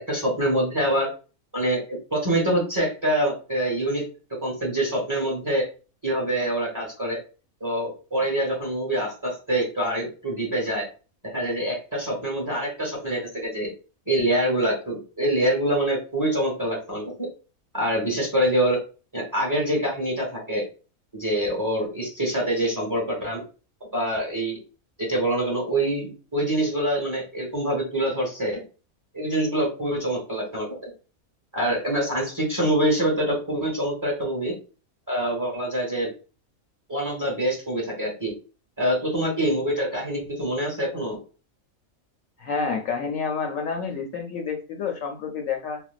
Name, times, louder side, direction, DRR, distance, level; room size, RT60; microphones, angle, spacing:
voice 1, 0.1-1.1 1.5-4.0 4.4-5.7 6.0-7.2 7.6-10.9 11.2-13.7 14.1-17.3 17.7-18.8 19.1-20.6 21.1-23.4 23.9-24.6 25.0-28.6 29.1-30.9 31.5-34.5 35.1-36.1 36.9-38.3 38.8-41.2, right 1 dB, 15° right, -2 dB, 1.0 m, -25 dB
voice 2, 42.4-45.8, left 5 dB, 70° left, 3 dB, 0.9 m, -29 dB
4.4 x 2.0 x 2.3 m, 0.34 s
omnidirectional pair, 1.5 m